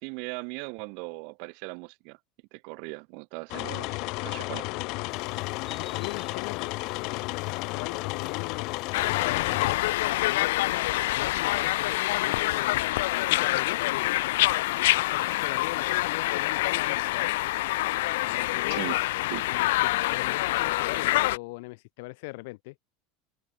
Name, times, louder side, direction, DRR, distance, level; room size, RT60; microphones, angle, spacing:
voice 1, 0.0-2.2 2.5-4.7 18.7-19.0 19.3-19.4, right 39 dB, 55° right, 1.8 m, -38 dB
sound 1, 3.5-9.8, left 26 dB, 50° left, 0.9 m, -33 dB
sound 2, 5.1-16.8, left 7 dB, 20° left, 4.9 m, -52 dB
voice 2, 5.7-7.2 7.5-8.7 9.1-12.9 13.3-13.8 15.0-17.3 18.2-19.0 19.5-22.7, left 25 dB, 65° left, 4.1 m, -40 dB
sound 3, 8.9-21.4, left 18 dB, 85° left, 1.5 m, -26 dB
cardioid pair, 170°, 0 cm